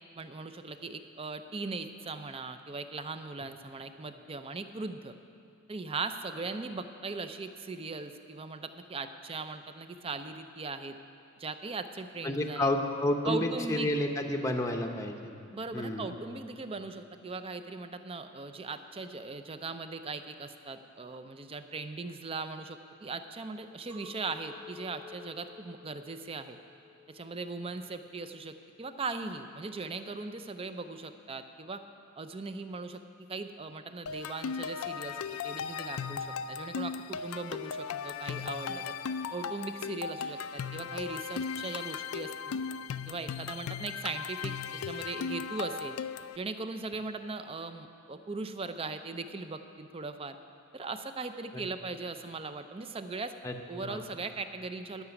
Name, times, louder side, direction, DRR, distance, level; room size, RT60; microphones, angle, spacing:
voice 1, 0.2-5.1 5.7-11.0 11.4-12.7 13.2-13.9 15.5-26.6 27.1-31.8 32.2-33.0 33.3-39.0 39.3-42.5 43.1-46.0 46.4-50.4 50.7-53.4 53.7-55.0, right 3 dB, 25° right, 9 dB, 0.5 m, -39 dB
voice 2, 12.2-15.3 15.7-16.1 53.4-53.6 53.8-54.0, left 1 dB, 15° left, 3 dB, 0.7 m, -30 dB
Chink clink, 23.9-29.1, left 4 dB, 10° right, 1.1 m, -53 dB
sound 1, 34.1-46.4, left 6 dB, 85° left, 0.4 m, -37 dB
13.5 x 5.9 x 9.7 m, 2.6 s
head